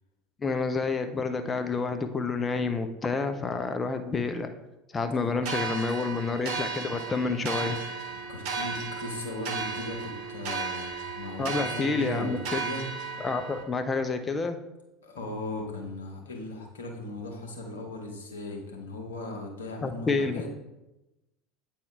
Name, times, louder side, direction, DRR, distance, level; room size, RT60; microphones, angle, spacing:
voice 1, 0.4-4.5 4.9-7.8 11.4-12.4 13.2-14.6 19.8-20.4, left 4 dB, 25° left, 7 dB, 0.5 m, -29 dB
sound 1, 5.4-13.6, right 4 dB, 55° right, 1.0 m, -35 dB
voice 2, 5.9-6.2 8.3-12.8 15.0-20.5, left 2 dB, 75° left, 0 dB, 1.3 m, -38 dB
8.3 x 4.3 x 3.5 m, 0.97 s
figure-of-eight pair, 75°, 0 cm